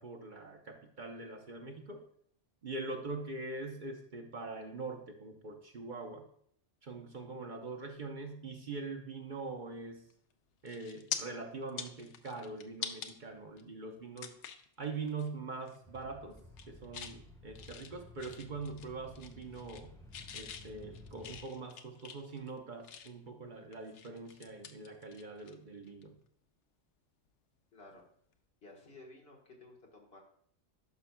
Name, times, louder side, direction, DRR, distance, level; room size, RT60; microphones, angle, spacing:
voice 1, 0.0-2.0 2.6-6.2 6.8-10.0 10.6-14.3 14.8-16.4 16.7-19.9 20.3-26.2, right 3 dB, 45° right, 3 dB, 0.9 m, -43 dB
sound 1, 10.1-10.3 10.7-11.2 11.6-13.1 13.6-13.7 14.2-14.7 15.1-15.3 15.6-16.0 16.4-17.2 17.5-18.9 19.1-19.9 20.1-23.3 23.7-25.5 25.8-26.0 27.9-28.1, left 7 dB, 80° left, 1.0 m, -45 dB
sound 2, 15.8-21.4, left 1 dB, 5° left, 0.8 m, -54 dB
voice 2, 27.7-28.0 28.6-30.2, left 2 dB, 60° left, -1 dB, 1.6 m, -54 dB
11.0 x 5.8 x 2.2 m, 0.64 s
omnidirectional pair, 1.2 m